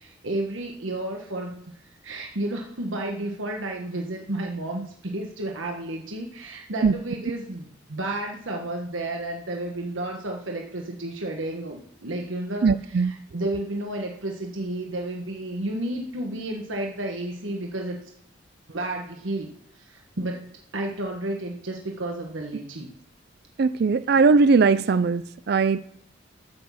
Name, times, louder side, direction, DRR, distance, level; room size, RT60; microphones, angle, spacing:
voice 1, 0.0-1.6 2.0-18.0 18.7-22.9, right 1 dB, 85° right, 1 dB, 1.3 m, -32 dB
voice 2, 12.6-13.1 23.6-25.8, right 4 dB, 55° right, 15 dB, 0.4 m, -19 dB
12.5 x 6.3 x 7.1 m, 0.71 s
head